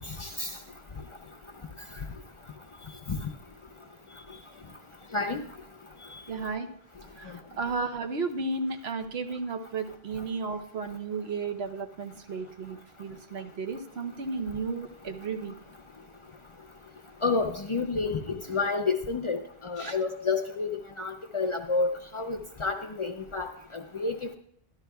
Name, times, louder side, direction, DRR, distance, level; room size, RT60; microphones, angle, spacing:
voice 1, 0.2-0.5 3.1-3.2 5.1-5.4 17.2-23.5 23.9-24.3, left 4 dB, 35° left, 3 dB, 0.6 m, -29 dB
voice 2, 6.3-6.7 7.2-15.5 19.8-20.0, right 4 dB, 80° right, 5 dB, 1.1 m, -34 dB
12.5 x 11.5 x 2.3 m, 0.69 s
omnidirectional pair, 1.0 m